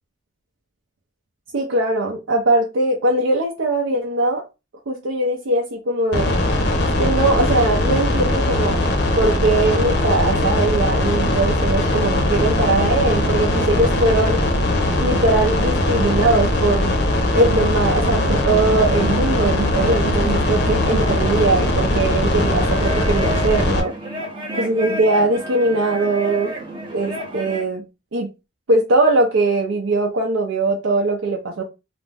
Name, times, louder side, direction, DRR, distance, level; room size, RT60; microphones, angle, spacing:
voice 1, 1.5-4.4 4.9-6.4 7.0-8.8 9.2-14.4 15.0-16.9 17.3-23.9 24.6-26.5 26.9-27.8 28.1-28.3 28.7-31.6, right 2 dB, 75° right, 0.5 m, -20 dB
sound 1, 6.1-23.8, left 1 dB, 55° left, 0.6 m, -20 dB
sound 2, 17.8-27.7, right 2 dB, 25° right, 0.5 m, -31 dB
2.5 x 2.1 x 3.2 m
head